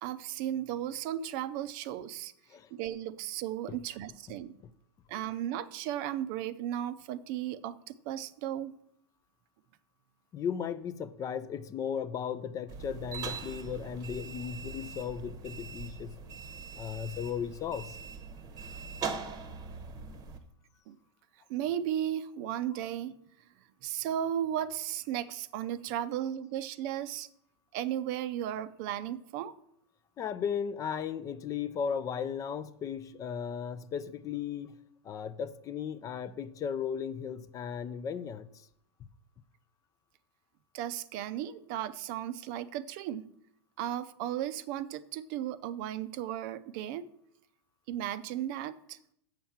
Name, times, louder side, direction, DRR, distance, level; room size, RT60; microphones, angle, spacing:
voice 1, 0.0-2.3 2.7-4.6 5.1-8.7 18.5-18.6 20.9-21.0 21.5-23.2 23.8-27.3 27.7-29.5 40.7-43.3 43.8-47.1 47.9-49.0, right 11 dB, 45° right, 14 dB, 0.6 m, -35 dB
voice 2, 10.3-16.2 16.7-18.0 30.2-34.7 35.0-38.7, left 7 dB, 25° left, 14 dB, 0.4 m, -36 dB
sound 1, 12.7-20.4, right 5 dB, 25° right, 0.9 m, -41 dB
7.4 x 5.7 x 7.2 m, 0.73 s
hypercardioid pair, 130°, 14 cm